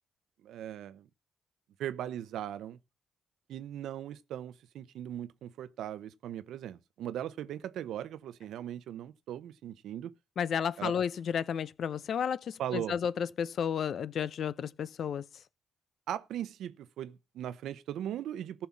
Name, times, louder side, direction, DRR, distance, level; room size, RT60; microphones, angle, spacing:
voice 1, 0.4-1.1 1.8-2.8 3.5-10.1 10.8-10.9 12.6-12.9 16.1-18.7, right 11 dB, 80° right, 0.8 m, -39 dB
voice 2, 10.4-15.3, left 8 dB, 65° left, 0.7 m, -32 dB
14.5 x 5.7 x 7.3 m
supercardioid pair, 55°, 0 cm